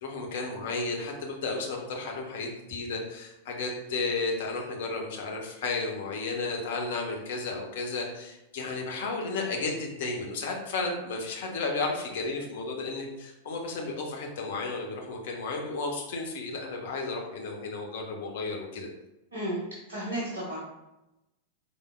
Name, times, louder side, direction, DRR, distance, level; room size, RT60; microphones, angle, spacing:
voice 1, 0.0-18.9, left 3 dB, 55° left, 1 dB, 0.9 m, -33 dB
voice 2, 19.3-20.6, right 1 dB, 65° right, -7 dB, 1.1 m, -33 dB
5.0 x 3.6 x 2.3 m, 0.93 s
figure-of-eight pair, 90°, 0 cm